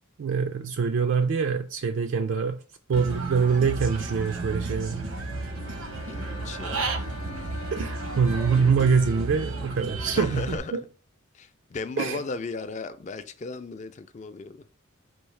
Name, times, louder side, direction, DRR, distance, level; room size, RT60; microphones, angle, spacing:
voice 1, 0.2-2.6 2.9-5.1 7.7-10.8 12.0-12.2, right 5 dB, 65° right, 0.3 m, -24 dB
Human voice / Bird, 2.9-10.6, right 2 dB, 85° right, 0.8 m, -33 dB
sound 1, 5.6-9.5, left 2 dB, 90° left, 0.6 m, -44 dB
voice 2, 6.1-6.9 10.1-10.8 11.3-14.7, left 4 dB, 35° left, 0.4 m, -36 dB
4.6 x 2.7 x 3.2 m
head